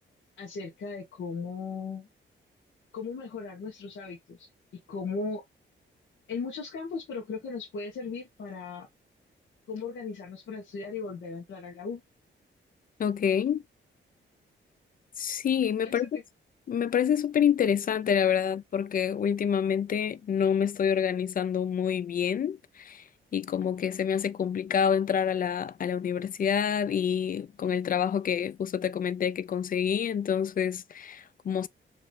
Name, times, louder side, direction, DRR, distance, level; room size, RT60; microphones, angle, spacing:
voice 1, 0.4-2.1 2.9-4.5 4.9-5.4 6.3-8.9 9.7-12.0 15.8-16.2, left 4 dB, 80° left, 1.5 m, -37 dB
voice 2, 13.0-13.6 15.2-16.1 16.7-23.0 23.3-31.7, left 8 dB, 45° left, 0.4 m, -27 dB
4.6 x 3.1 x 3.1 m
wide cardioid pair, 130°, 20 cm